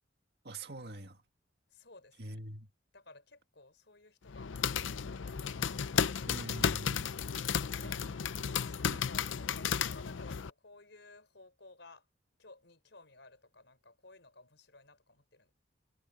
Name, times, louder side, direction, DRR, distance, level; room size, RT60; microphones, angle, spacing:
voice 1, 0.4-1.2 2.2-2.7 6.3-7.1 8.5-8.6 8.8-9.0, right 1 dB, 55° right, 2.1 m, -44 dB
voice 2, 1.7-2.4 2.9-5.5 7.3-8.1 8.5-12.1 12.4-15.5, left 3 dB, 70° left, 4.5 m, -56 dB
sound 1, 4.3-10.5, left 7 dB, 85° left, 0.6 m, -34 dB
head